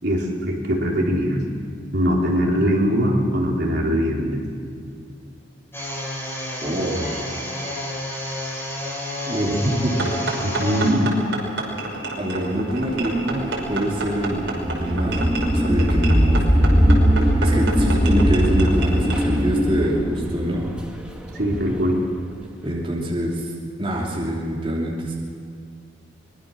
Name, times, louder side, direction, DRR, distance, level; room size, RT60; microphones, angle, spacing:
voice 1, 0.0-1.4 1.9-4.4 10.4-11.1 21.3-22.0, equal, 60° right, -1 dB, 4.2 m, -21 dB
sound 1, 5.7-10.9, left 1 dB, 10° left, 5.5 m, -30 dB
voice 2, 6.6-7.1 9.3-10.1 12.2-15.3 15.5-16.4 17.4-20.7 22.6-23.5 23.8-25.1, right 1 dB, 30° right, -4 dB, 3.2 m, -25 dB
sound 2, 10.0-19.2, right 2 dB, 75° right, 5.9 m, -30 dB
sound 3, 12.8-21.8, equal, 5° right, 2.0 m, -20 dB
24.5 x 21.5 x 6.4 m, 2.3 s
head